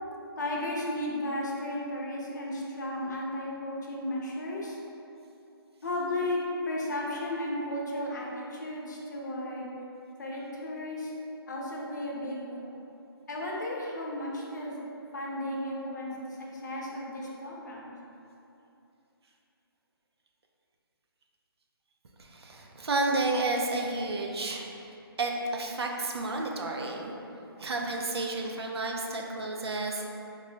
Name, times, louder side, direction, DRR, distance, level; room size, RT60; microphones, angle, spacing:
voice 1, 0.4-4.8 5.8-9.7 10.2-11.1 11.5-12.8 13.3-14.8 15.1-17.9, left 1 dB, 45° left, -3 dB, 0.6 m, -34 dB
voice 2, 22.2-24.7 25.2-27.1 27.6-30.1, right 2 dB, 85° right, 1 dB, 0.5 m, -31 dB
3.8 x 2.2 x 3.1 m, 2.8 s
hypercardioid pair, 175°, 13 cm